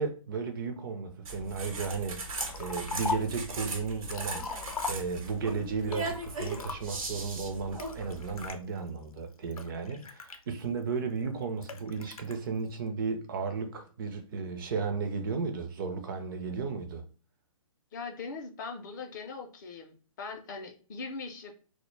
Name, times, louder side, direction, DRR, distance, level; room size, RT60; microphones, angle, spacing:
voice 1, 0.0-17.0, right 5 dB, 40° right, 0.4 m, -34 dB
sound 1, 1.2-8.5, right 2 dB, 75° right, 0.8 m, -39 dB
Liquid, 2.4-3.4 3.9-5.4 5.9-7.1 7.8-8.6 9.2-10.8 11.6-12.3, left 5 dB, 90° left, 0.5 m, -38 dB
voice 2, 17.9-21.5, left 4 dB, 35° left, 0.4 m, -40 dB
2.1 x 2.0 x 3.0 m
hypercardioid pair, 145°, 18 cm